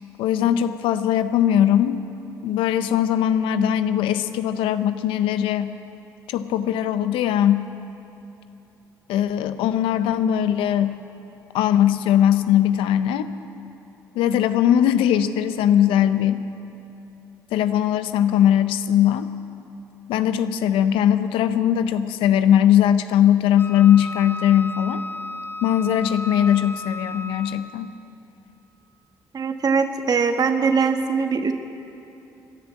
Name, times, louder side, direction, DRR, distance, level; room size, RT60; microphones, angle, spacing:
voice 1, 0.2-2.0 2.4-5.7 6.3-7.7 9.1-10.9 11.5-13.3 14.1-16.5 17.5-19.3 20.1-25.0 25.6-27.9, left 10 dB, 80° left, 11 dB, 0.6 m, -20 dB
Wind instrument woodwind instrument, 23.6-27.8, left 1 dB, 25° left, 1.1 m, -34 dB
voice 2, 29.3-31.5, right 5 dB, 45° right, 6 dB, 1.4 m, -21 dB
16.0 x 10.5 x 8.4 m, 2.9 s
supercardioid pair, 60°, 9 cm